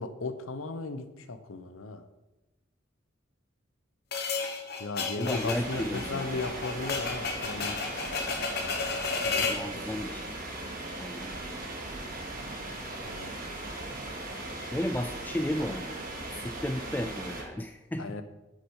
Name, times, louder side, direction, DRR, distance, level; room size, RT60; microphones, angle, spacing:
voice 1, 0.0-2.0 4.8-7.8 9.2-9.9 13.0-13.3 18.0-18.2, left 3 dB, 85° left, 11 dB, 0.8 m, -36 dB
sound 1, 4.1-9.7, left 4 dB, 50° left, 1.0 m, -33 dB
voice 2, 5.2-6.5 9.5-10.3 11.0-11.5 14.7-15.9 16.4-18.2, left 1 dB, 10° left, 6 dB, 0.3 m, -34 dB
sound 2, 5.3-17.4, right 2 dB, 45° right, 1.7 m, -38 dB
8.5 x 6.2 x 4.8 m, 1.0 s
head